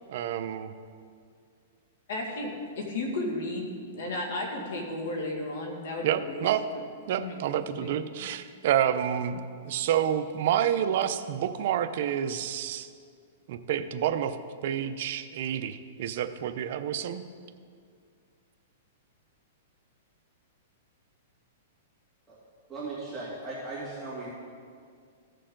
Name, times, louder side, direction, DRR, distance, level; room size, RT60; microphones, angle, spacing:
voice 1, 0.1-0.7 6.0-6.7 7.1-12.9 13.5-14.4 14.6-17.2, right 10 dB, 55° right, 10 dB, 0.6 m, -28 dB
voice 2, 2.1-6.5 7.2-7.5 7.8-7.9 8.2-8.3, left 2 dB, 70° left, 0 dB, 2.1 m, -34 dB
voice 3, 22.7-24.3, right 3 dB, ahead, -12 dB, 2.5 m, -37 dB
15.5 x 6.6 x 3.8 m, 2.2 s
hypercardioid pair, 150°, 0 cm